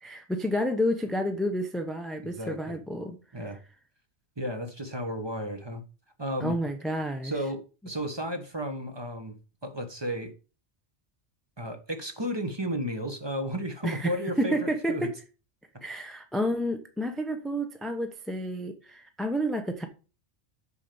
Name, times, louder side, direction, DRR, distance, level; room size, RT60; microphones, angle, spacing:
voice 1, 0.0-3.2 6.4-7.3 13.8-15.1 15.8-19.9, equal, ahead, 0.8 m, -30 dB
voice 2, 2.2-2.8 3.3-3.6 4.4-5.8 6.2-6.6 7.2-9.4 9.6-10.3 11.6-15.1, equal, 25° right, 1.3 m, -33 dB
7.0 x 5.8 x 6.9 m
omnidirectional pair, 1.2 m